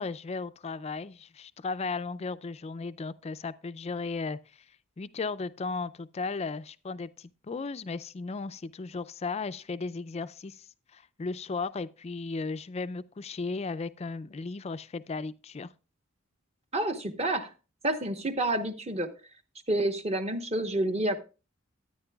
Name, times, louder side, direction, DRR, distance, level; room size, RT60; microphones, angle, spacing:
voice 1, 0.0-4.4 5.0-10.7 10.9-15.7, left 4 dB, 30° left, 0.4 m, -35 dB
voice 2, 16.7-17.5 17.8-19.1 19.7-21.1, right 1 dB, 30° right, 1.0 m, -29 dB
13.5 x 9.9 x 2.3 m
head